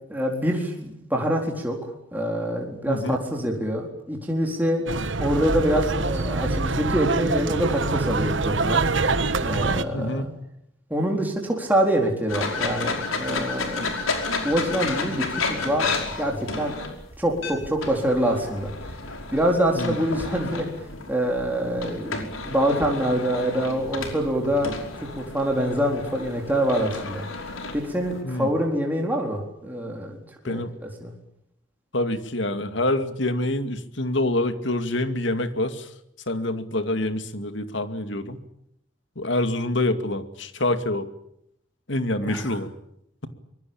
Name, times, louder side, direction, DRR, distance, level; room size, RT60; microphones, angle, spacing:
voice 1, 0.1-4.8 5.2-8.8 9.4-10.3 10.9-13.9 14.4-15.2 15.6-15.9 16.2-16.7 17.2-18.7 19.3-20.7 21.1-24.7 25.2-27.2 27.7-30.2 30.4-30.6 31.0-31.1 42.3-42.5, right 1 dB, 10° right, 0 dB, 4.2 m, -25 dB
voice 2, 2.9-3.2 9.9-10.3 19.7-20.0 28.2-28.5 30.4-30.7 31.9-35.9 36.3-38.4 39.2-41.1 41.9-42.7, left 1 dB, 65° left, 9 dB, 2.4 m, -26 dB
sound 1, 4.9-9.8, right 3 dB, 65° right, 1.4 m, -25 dB
sound 2, 12.3-28.2, left 3 dB, 85° left, 5.4 m, -32 dB
25.0 x 22.5 x 8.9 m, 0.77 s
head